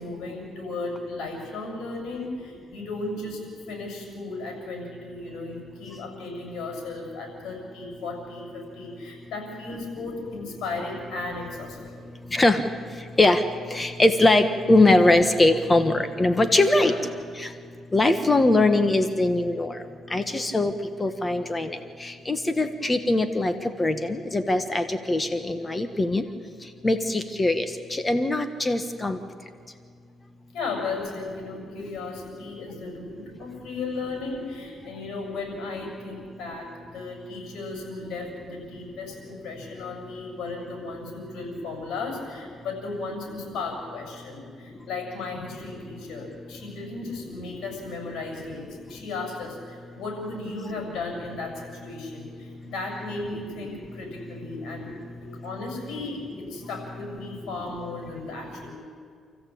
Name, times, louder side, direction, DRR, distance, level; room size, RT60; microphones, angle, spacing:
voice 1, 0.0-12.0 16.6-17.0 30.5-54.9 55.2-58.7, left 3 dB, 80° left, 2 dB, 7.1 m, -35 dB
voice 2, 12.3-12.6 13.2-13.4 13.7-16.9 17.4-17.5 17.9-19.7 20.1-20.7 21.0-23.5 23.8-26.2 26.8-27.6 27.9-29.2, left 2 dB, 20° left, 9 dB, 1.4 m, -21 dB
28.0 x 14.5 x 8.8 m, 2.1 s
cardioid pair, 90°, 0 cm